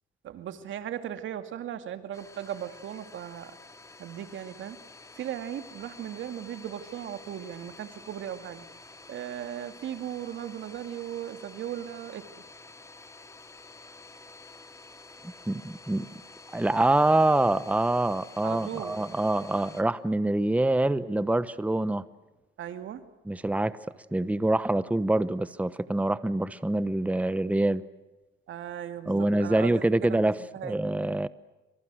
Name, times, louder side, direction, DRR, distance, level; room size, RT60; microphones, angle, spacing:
voice 1, 0.2-3.6 4.0-4.8 5.2-8.7 9.1-12.2 18.4-19.0 22.6-23.0 28.5-30.8, right 10 dB, 75° right, 9 dB, 2.4 m, -37 dB
Domestic sounds home sounds, 2.1-19.8, left 3 dB, 15° left, 2.7 m, -50 dB
voice 2, 15.2-16.1 16.5-22.0 23.3-23.8 24.1-27.8 29.1-30.4 30.6-31.3, right 2 dB, 5° right, 15 dB, 1.0 m, -25 dB
28.5 x 26.0 x 6.4 m, 1.0 s
cardioid pair, 90°, 20 cm